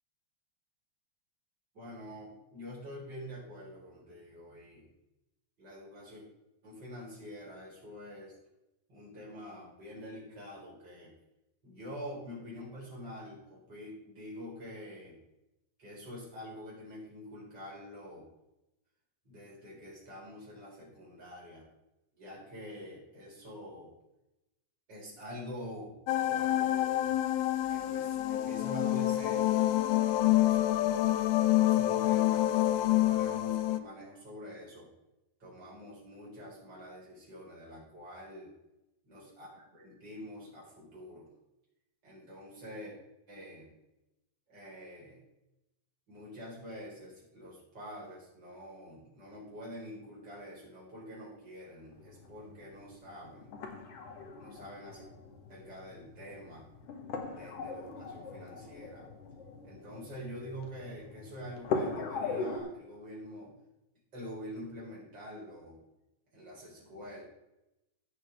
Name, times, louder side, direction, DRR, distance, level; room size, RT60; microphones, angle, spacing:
voice 1, 1.7-4.9 5.6-6.2 6.6-8.3 8.9-11.1 11.6-15.2 15.8-18.3 19.2-21.7 22.2-23.9 24.9-26.0 26.3-27.2 27.7-29.7 30.3-30.7 31.6-34.9 35.4-38.5 39.0-41.3 42.0-43.0 43.3-43.7 44.5-45.2 46.1-53.5 54.4-55.1 55.5-56.7 57.3-59.1 59.6-63.5 64.1-65.8 66.3-67.3, equal, 35° right, -5 dB, 4.7 m, -46 dB
sound 1, 26.1-33.8, left 14 dB, 90° left, 1.4 m, -27 dB
sound 2, 51.9-62.6, left 4 dB, 60° left, 2.2 m, -40 dB
16.0 x 6.5 x 3.5 m, 0.91 s
omnidirectional pair, 3.5 m